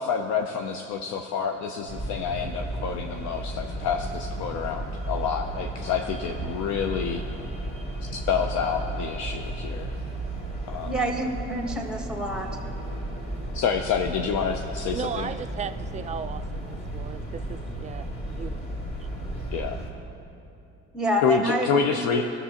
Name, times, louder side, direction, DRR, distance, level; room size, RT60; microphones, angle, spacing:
voice 1, 0.0-7.2 8.3-9.9 10.7-10.9 13.5-15.3 19.5-19.8 21.2-22.2, left 6 dB, 65° left, 4 dB, 0.6 m, -28 dB
sound 1, 1.9-19.9, right 1 dB, 30° left, 2.5 m, -34 dB
voice 2, 10.8-12.5 20.9-22.2, right 1 dB, 5° right, 2 dB, 1.3 m, -28 dB
voice 3, 14.9-18.6 19.0-19.1, right 7 dB, 25° right, 9 dB, 0.4 m, -36 dB
16.0 x 6.9 x 2.9 m, 2.7 s
supercardioid pair, 90°, 30 cm